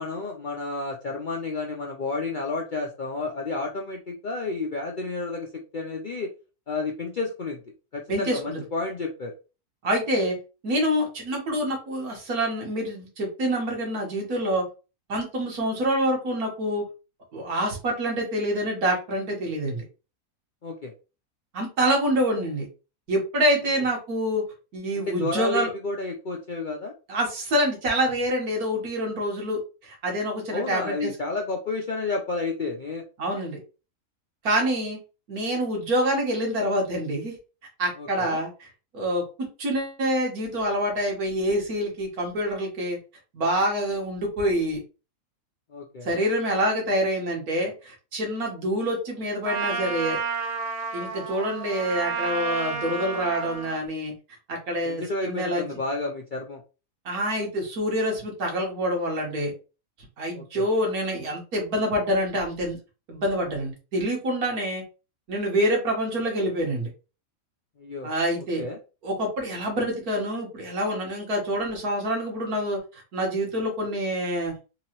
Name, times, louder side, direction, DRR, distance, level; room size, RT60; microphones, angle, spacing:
voice 1, 0.0-5.5 5.7-6.3 6.7-7.6 7.9-9.3 20.6-20.9 25.0-26.9 30.5-33.0 38.0-38.4 45.7-46.1 54.8-56.6 60.3-60.7 67.8-68.1 68.6-68.8, left 3 dB, 60° left, 0 dB, 0.5 m, -31 dB
voice 2, 8.1-8.6 9.8-10.4 10.6-14.7 15.1-16.8 17.3-19.8 21.5-22.7 23.1-24.4 24.7-25.7 27.1-31.1 33.2-33.6 34.4-35.0 35.3-37.4 37.8-38.7 38.9-43.0 43.3-44.8 46.0-50.2 50.9-54.1 54.5-55.8 57.1-59.5 60.2-62.8 63.1-64.8 65.3-66.9 68.0-68.6 69.0-72.8 73.1-74.5, equal, 85° right, 0 dB, 1.9 m, -26 dB
Trumpet, 49.4-53.8, right 5 dB, 60° right, 0.6 m, -31 dB
3.9 x 2.9 x 3.0 m, 0.32 s
omnidirectional pair, 1.5 m